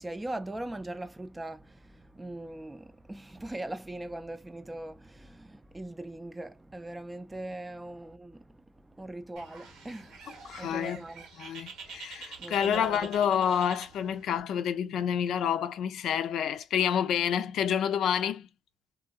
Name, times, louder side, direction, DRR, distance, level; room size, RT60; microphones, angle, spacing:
voice 1, 0.0-8.4 9.0-10.2 10.5-11.2 12.4-13.1, right 1 dB, 15° right, 0.4 m, -40 dB
Bird, 9.4-14.4, right 5 dB, 85° right, 1.3 m, -47 dB
voice 2, 10.4-11.1 11.4-18.5, left 8 dB, 75° left, 0.4 m, -28 dB
2.8 x 2.7 x 2.3 m
cardioid pair, 90°, 0 cm